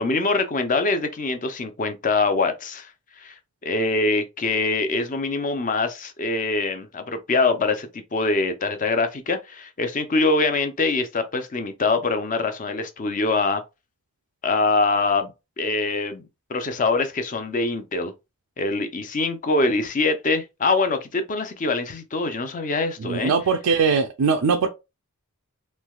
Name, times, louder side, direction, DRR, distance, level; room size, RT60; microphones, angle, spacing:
voice 1, 0.0-2.9 3.2-3.3 3.6-13.6 14.4-18.1 18.6-23.3, left 3 dB, 35° left, 0.5 m, -24 dB
voice 2, 23.0-24.7, right 5 dB, 85° right, 0.4 m, -21 dB
3.2 x 3.1 x 2.3 m
head